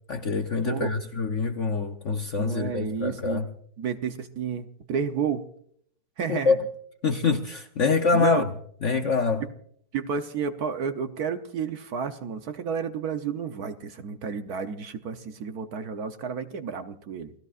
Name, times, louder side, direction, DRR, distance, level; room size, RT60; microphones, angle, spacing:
voice 1, 0.1-3.5 6.3-6.6 7.0-8.4 8.8-9.4, left 4 dB, 55° left, 0.9 m, -25 dB
voice 2, 2.3-3.5 3.8-5.5 6.2-6.6 8.1-8.5 9.4-9.5 9.9-17.3, right 6 dB, 60° right, 1.2 m, -31 dB
29.5 x 17.5 x 2.5 m
omnidirectional pair, 2.1 m